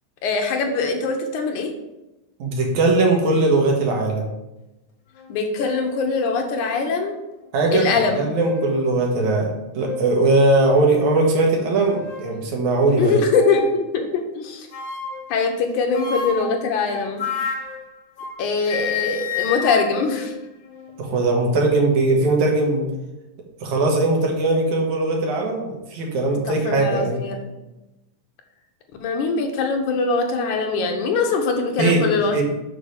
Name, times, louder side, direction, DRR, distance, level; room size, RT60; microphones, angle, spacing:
voice 1, 0.2-1.7 5.3-7.2 7.7-8.3 13.0-14.7 15.3-17.2 18.4-20.3 26.5-27.4 29.0-32.4, left 4 dB, 75° left, 3 dB, 2.3 m, -22 dB
voice 2, 2.4-4.2 7.5-7.9 8.1-13.2 21.0-22.9 23.6-27.2 31.8-32.0 32.3-32.4, right 2 dB, 65° right, 0 dB, 2.7 m, -20 dB
sound 1, 5.2-5.3 5.6-6.0 6.7-6.8 8.1-8.8 9.2-9.4 9.8-10.0 10.6-10.9 11.6-12.3 13.3-13.8 14.7-15.3 15.9-18.4 18.7-21.0, left 6 dB, 50° left, 1.6 m, -30 dB
6.8 x 4.9 x 6.4 m, 0.97 s
omnidirectional pair, 3.7 m